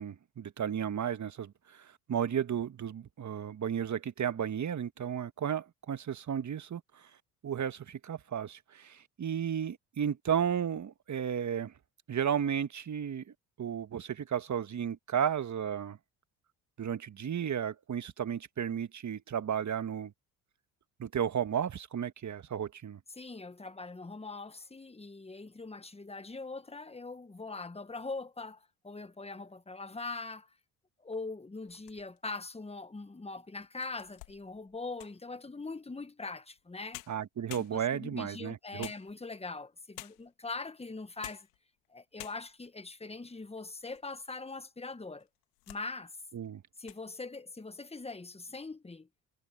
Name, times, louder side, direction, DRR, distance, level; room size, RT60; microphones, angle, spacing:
voice 1, 0.0-6.8 7.4-11.7 12.1-13.2 13.6-16.0 16.8-20.1 21.0-23.0 37.1-38.9 46.3-46.6, right 8 dB, 40° right, 1.6 m, -33 dB
voice 2, 23.1-30.5 31.0-37.0 37.6-41.5 41.9-45.3 45.7-46.2 46.8-49.1, left 3 dB, 15° left, 1.5 m, -42 dB
sound 1, 31.6-32.4 33.0-33.1 33.6-35.3 36.6-36.7 36.9-38.1 38.8-39.5 40.0-40.4 41.0-41.6 41.9-42.0 42.2-42.7 43.3-44.1 44.4-44.5 45.2-45.9 46.2-46.5 46.8-47.1, left 23 dB, 85° left, 2.1 m, -50 dB
hypercardioid pair, 65°, 46 cm